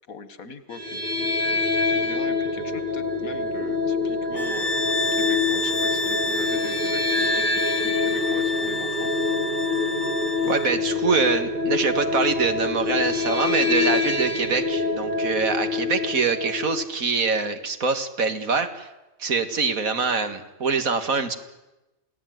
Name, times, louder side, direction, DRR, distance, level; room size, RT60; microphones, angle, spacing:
voice 1, 0.1-9.1, left 5 dB, 90° left, 13 dB, 2.0 m, -42 dB
sound 1, 0.7-16.8, left 3 dB, 35° right, 2.1 m, -26 dB
sound 2, 4.3-10.8, left 3 dB, 15° right, 1.6 m, -29 dB
voice 2, 10.4-18.9 19.2-21.4, right 4 dB, 80° right, 9 dB, 2.3 m, -24 dB
28.5 x 17.0 x 9.4 m, 1.0 s
omnidirectional pair, 1.4 m